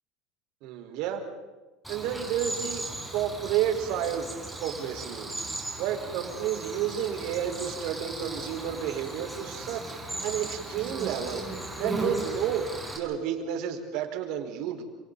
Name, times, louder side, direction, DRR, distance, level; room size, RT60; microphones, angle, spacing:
voice 1, 0.6-1.2 1.9-2.8 3.1-4.4 4.6-5.5 5.8-9.8 10.2-11.4 11.8-12.7 12.9-14.8, right 10 dB, 65° right, 3 dB, 4.6 m, -31 dB
Cricket, 1.8-13.0, right 2 dB, 5° right, 5.8 m, -37 dB
30.0 x 27.5 x 4.1 m, 1.2 s
supercardioid pair, 125°, 0 cm